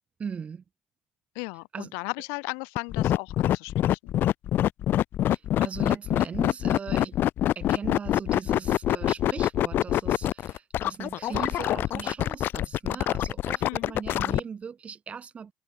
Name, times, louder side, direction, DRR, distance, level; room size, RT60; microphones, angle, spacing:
voice 1, 0.2-0.6 1.7-1.9 5.3-7.2 7.6-15.5, right 6 dB, 30° right, 5.8 m, -39 dB
voice 2, 1.3-4.2 13.6-13.9, left 37 dB, 85° left, 2.5 m, -36 dB
sound 1, 2.8-14.4, left 12 dB, 50° left, 1.1 m, -25 dB
cardioid pair, 125°, 4 cm